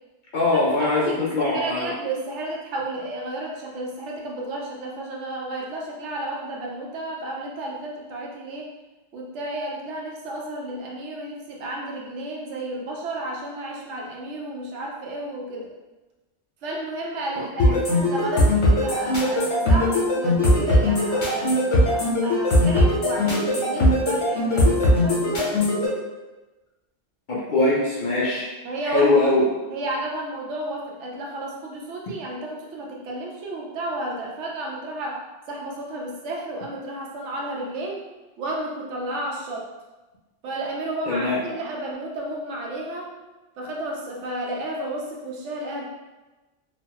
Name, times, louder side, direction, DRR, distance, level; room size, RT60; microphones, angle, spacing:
voice 1, 0.3-1.9 17.4-17.8 27.3-28.5 28.8-29.5 41.0-41.4, left 2 dB, 55° left, -6 dB, 0.6 m, -22 dB
voice 2, 1.0-8.7 9.1-15.7 16.6-25.9 28.6-29.1 29.7-38.0 38.4-39.7 40.4-43.1 43.6-45.8, right 1 dB, 75° right, -1 dB, 0.9 m, -32 dB
sound 1, 17.6-25.9, left 1 dB, 85° left, 1.2 m, -19 dB
3.0 x 2.2 x 2.8 m, 1.1 s
omnidirectional pair, 1.2 m